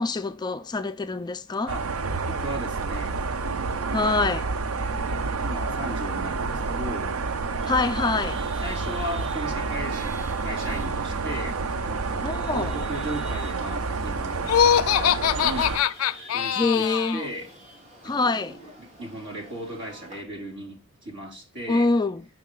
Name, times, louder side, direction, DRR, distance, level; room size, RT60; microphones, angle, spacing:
voice 1, 0.0-1.7 3.9-4.5 7.7-8.4 12.2-12.8 16.5-17.2 18.0-18.6 21.7-22.3, left 3 dB, 20° left, 0.3 m, -25 dB
sound 1, 1.7-15.8, right 4 dB, 85° right, 0.6 m, -29 dB
voice 2, 2.3-4.1 5.4-7.1 8.6-11.6 11.9-15.8 16.3-17.5 18.0-21.9, right 1 dB, 60° right, 3.0 m, -37 dB
Chatter / Vehicle horn car horn honking / Traffic noise roadway noise, 7.6-20.2, right 3 dB, 35° right, 2.4 m, -46 dB
Laughter, 14.4-17.3, left 9 dB, 90° left, 0.4 m, -22 dB
6.4 x 5.8 x 3.7 m
head